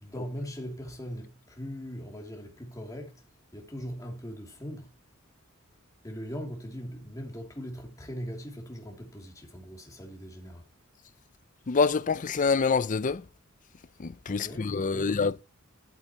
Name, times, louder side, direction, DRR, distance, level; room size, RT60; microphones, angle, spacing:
voice 1, 0.0-3.2 3.5-4.9 6.0-10.7 14.3-15.2, equal, 15° left, 2.7 m, -40 dB
voice 2, 11.7-13.2 14.0-15.4, left 4 dB, 40° left, 0.5 m, -26 dB
12.0 x 8.2 x 2.9 m
head